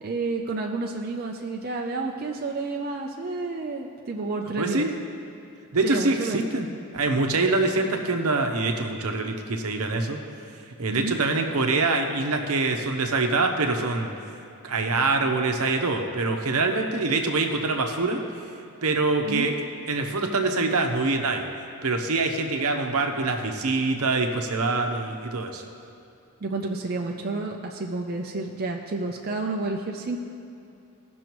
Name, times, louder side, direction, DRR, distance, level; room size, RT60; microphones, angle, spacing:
voice 1, 0.0-4.9 5.8-6.4 10.9-11.2 19.2-19.5 26.4-30.2, right 3 dB, 45° right, 1 dB, 0.5 m, -30 dB
voice 2, 4.6-4.9 5.7-6.7 6.9-10.2 10.8-14.1 14.6-18.2 18.8-19.6 19.9-21.5 21.8-25.6, right 3 dB, 75° right, 4 dB, 0.8 m, -24 dB
16.5 x 6.2 x 3.0 m, 2.6 s
head